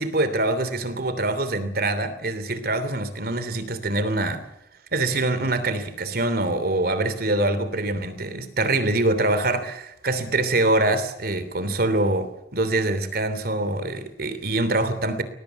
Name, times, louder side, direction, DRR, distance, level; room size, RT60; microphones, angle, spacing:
voice 1, 0.0-4.5 4.9-15.2, right 2 dB, 60° right, 3.0 m, -24 dB
21.5 x 20.0 x 8.2 m
head